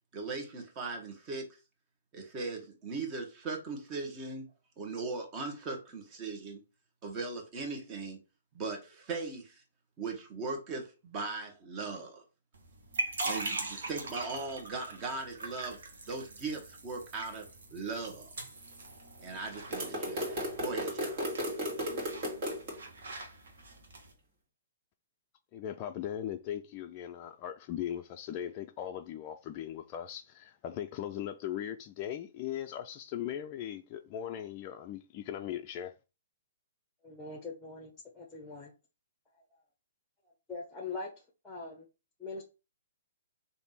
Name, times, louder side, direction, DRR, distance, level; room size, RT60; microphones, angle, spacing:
voice 1, 0.1-1.5 2.1-4.4 4.8-6.6 7.0-8.2 8.5-9.6 10.0-12.2 13.2-15.8 16.1-17.4 17.7-18.3 19.2-21.2, right 3 dB, 30° right, 1.2 m, -39 dB
sound 1, 12.5-24.1, right 2 dB, 70° right, 1.0 m, -42 dB
sound 2, 19.7-22.7, equal, 45° right, 1.8 m, -34 dB
voice 2, 25.5-35.9, left 10 dB, 35° left, 0.3 m, -39 dB
voice 3, 37.0-38.7 40.5-41.1 41.4-41.8 42.2-42.4, left 3 dB, 10° left, 0.8 m, -42 dB
3.4 x 2.6 x 4.1 m
hypercardioid pair, 130°, 0 cm